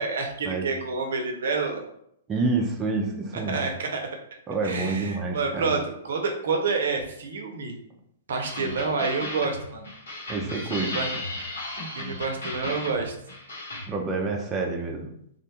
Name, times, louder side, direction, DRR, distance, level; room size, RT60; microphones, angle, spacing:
voice 1, 0.0-1.8 3.3-4.1 4.6-7.7 8.3-9.9 10.7-11.1 11.9-13.1, right 4 dB, 70° right, 3 dB, 0.5 m, -28 dB
voice 2, 2.3-3.7 4.5-5.7 10.3-11.0 13.9-15.1, right 3 dB, 20° right, 0 dB, 0.4 m, -28 dB
sound 1, 8.4-13.8, left 2 dB, 80° left, 1.1 m, -35 dB
2.4 x 2.2 x 2.8 m, 0.71 s
hypercardioid pair, 120°, 0 cm